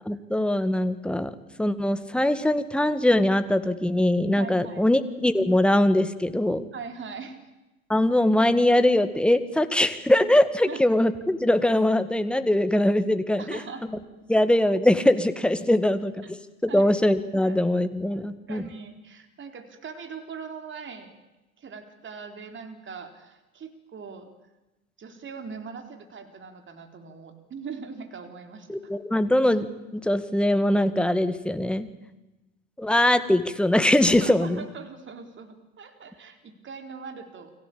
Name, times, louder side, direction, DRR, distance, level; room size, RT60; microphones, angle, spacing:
voice 1, 0.1-1.3 1.6-6.7 7.9-13.6 14.3-16.1 16.6-18.6 28.7-29.7 29.9-31.9 32.8-34.6, left 1 dB, ahead, 10 dB, 2.0 m, -22 dB
voice 2, 4.3-4.8 6.7-7.5 10.7-10.8 13.4-13.8 16.2-16.3 16.7-16.9 17.4-17.6 18.1-21.1 21.6-24.3 25.0-28.9 34.2-37.5, right 5 dB, 25° right, 7 dB, 4.2 m, -41 dB
29.5 x 22.5 x 8.8 m, 1.0 s
figure-of-eight pair, 80°, 42 cm